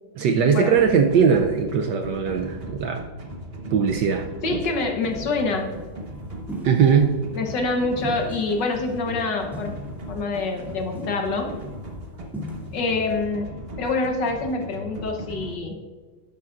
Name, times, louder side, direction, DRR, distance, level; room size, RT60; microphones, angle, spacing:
voice 1, 0.2-3.1 3.7-4.3 6.6-7.2, right 6 dB, 70° right, 4 dB, 1.1 m, -20 dB
sound 1, 0.8-15.5, equal, 35° right, 1.2 m, -38 dB
voice 2, 4.4-5.7 7.3-9.8 10.1-11.5 12.7-13.5 13.8-15.8, left 3 dB, 60° left, 3 dB, 1.6 m, -26 dB
sound 2, 5.1-5.4 6.5-7.0 7.5-7.6 8.0-9.0 9.5-10.2 10.5-10.6 10.9-11.6 12.3-12.9, equal, ahead, 2.3 m, -37 dB
11.5 x 11.0 x 2.5 m, 1.4 s
omnidirectional pair, 2.3 m